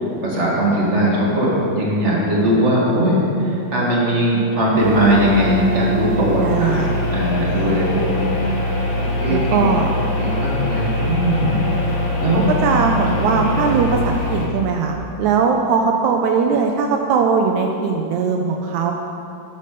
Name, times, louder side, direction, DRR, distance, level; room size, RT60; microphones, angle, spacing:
voice 1, 0.2-8.3 8.6-9.7 10.2-12.5 13.1-13.4, equal, 30° right, -5 dB, 1.3 m, -20 dB
sound 1, 4.8-14.5, left 1 dB, 55° left, 3.4 m, -23 dB
voice 2, 6.4-7.1 7.5-7.9 9.3-9.9 12.3-18.9, right 5 dB, 85° right, 2 dB, 1.6 m, -20 dB
11.5 x 5.3 x 6.7 m, 2.8 s
omnidirectional pair, 4.0 m